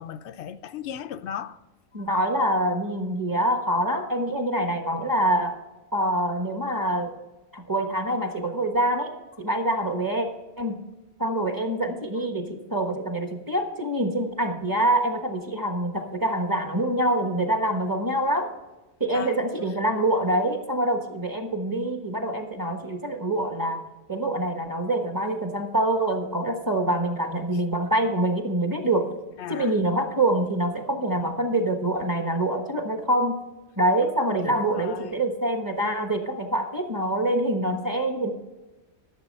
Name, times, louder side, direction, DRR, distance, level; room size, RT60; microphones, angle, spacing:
voice 1, 0.0-1.6 2.0-2.1 19.1-19.3 29.4-29.7 34.5-35.2, left 9 dB, 85° left, 0.9 m, -36 dB
voice 2, 1.9-5.6 5.9-7.1 7.5-9.1 9.4-10.3 10.6-10.8 11.2-18.5 19.0-23.8 24.1-29.1 29.5-33.4 33.8-38.3, right 1 dB, 20° right, 1.3 m, -25 dB
12.5 x 7.1 x 5.4 m
omnidirectional pair, 1.1 m